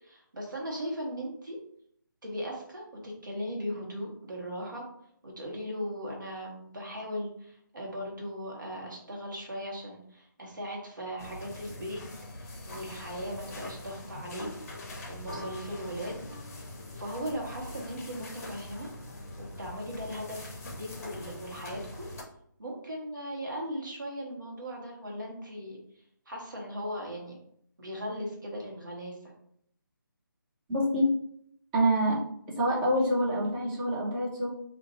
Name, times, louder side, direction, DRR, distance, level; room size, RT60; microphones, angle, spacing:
voice 1, 0.0-1.6 2.2-4.8 5.2-12.0 12.3-14.5 15.1-16.3 16.9-18.9 19.4-22.1 22.6-25.8 26.3-27.4 27.8-29.2, equal, 65° right, -2 dB, 1.1 m, -38 dB
sound 1, 11.2-22.2, left 2 dB, 45° left, 0.6 m, -43 dB
voice 2, 30.7-31.1 31.7-32.2 32.6-34.5, equal, 10° right, -5 dB, 0.6 m, -26 dB
2.5 x 2.4 x 2.8 m, 0.67 s
figure-of-eight pair, 150°, 11 cm